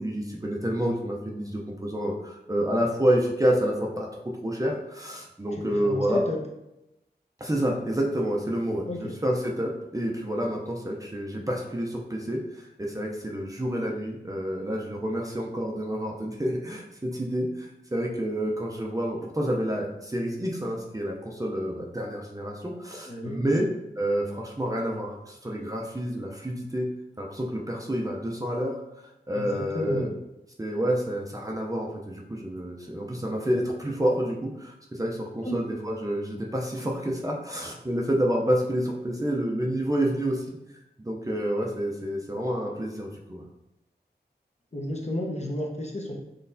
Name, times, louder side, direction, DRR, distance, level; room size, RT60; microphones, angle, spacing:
voice 1, 0.0-4.1 4.4-6.2 7.4-23.7 24.0-26.9 27.2-28.8 29.3-30.1 30.6-40.6 41.0-43.4, equal, 20° right, -1 dB, 0.6 m, -28 dB
voice 2, 5.5-6.4 8.9-9.1 23.0-23.6 29.3-30.1 35.4-35.6 44.7-46.1, left 1 dB, 40° left, -1 dB, 0.9 m, -32 dB
4.0 x 3.2 x 2.7 m, 0.90 s
wide cardioid pair, 55°, 18 cm